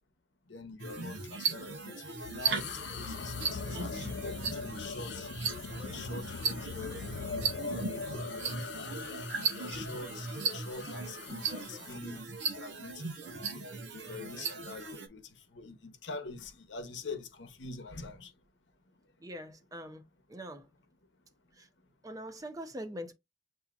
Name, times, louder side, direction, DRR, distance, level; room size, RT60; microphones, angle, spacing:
voice 1, 0.5-5.3 5.8-7.3 7.6-12.2 12.5-13.6 13.9-18.3, left 3 dB, 85° left, 0.9 m, -45 dB
sound 1, 0.8-15.1, right 5 dB, 85° right, 0.8 m, -37 dB
sound 2, 2.2-12.0, left 5 dB, 70° left, 0.4 m, -41 dB
voice 2, 19.2-20.0 20.3-20.7 21.5-21.7 22.0-23.1, equal, 20° right, 0.6 m, -43 dB
6.9 x 2.7 x 2.4 m
head